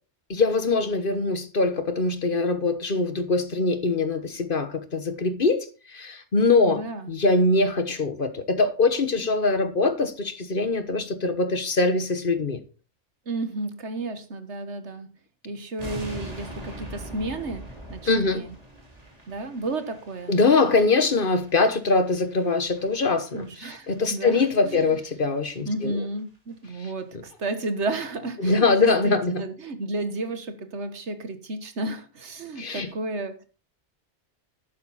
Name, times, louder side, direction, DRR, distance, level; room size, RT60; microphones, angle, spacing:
voice 1, 0.3-6.8 7.1-12.6 18.1-18.4 20.3-26.0 28.4-29.4 32.6-32.9, left 3 dB, 50° left, 1.4 m, -23 dB
voice 2, 6.6-7.1 13.2-15.1 15.4-18.5 19.3-20.4 23.3-25.0 25.7-33.4, right 2 dB, 75° right, 1.7 m, -32 dB
sound 1, 15.8-25.0 25.2-25.4 25.8-25.9 26.2-26.3 26.5-26.9 27.1-27.2, right 1 dB, 35° right, 3.4 m, -43 dB
11.5 x 9.5 x 4.1 m
omnidirectional pair, 1.2 m